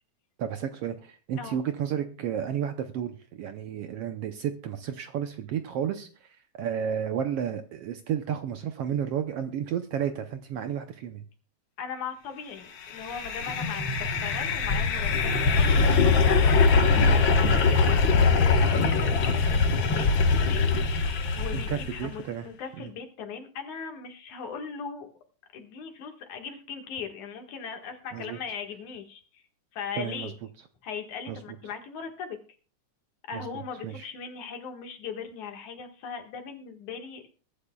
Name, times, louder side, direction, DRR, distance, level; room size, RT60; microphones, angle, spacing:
voice 1, 0.4-11.2 21.5-22.5 22.8-22.9 28.1-28.4 29.9-30.3 31.3-31.4 33.3-34.1, right 9 dB, 70° right, 8 dB, 1.5 m, -32 dB
voice 2, 11.8-20.1 20.4-25.1 25.5-29.4 29.7-30.3 30.8-32.4 33.3-37.2, left 6 dB, 75° left, 4 dB, 3.1 m, -39 dB
sound 1, 12.9-22.1, left 4 dB, 50° left, 1.6 m, -22 dB
22.0 x 12.0 x 2.3 m, 0.37 s
omnidirectional pair, 3.4 m